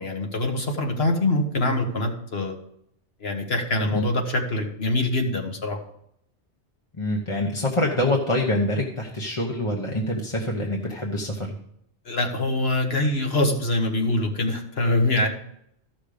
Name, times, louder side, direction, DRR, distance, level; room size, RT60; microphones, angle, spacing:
voice 1, 0.0-2.6 3.2-5.8 12.0-15.3, left 1 dB, 60° left, 3 dB, 1.7 m, -24 dB
voice 2, 7.0-11.6, left 1 dB, 30° left, -1 dB, 1.0 m, -25 dB
13.5 x 6.2 x 5.0 m, 0.73 s
omnidirectional pair, 1.2 m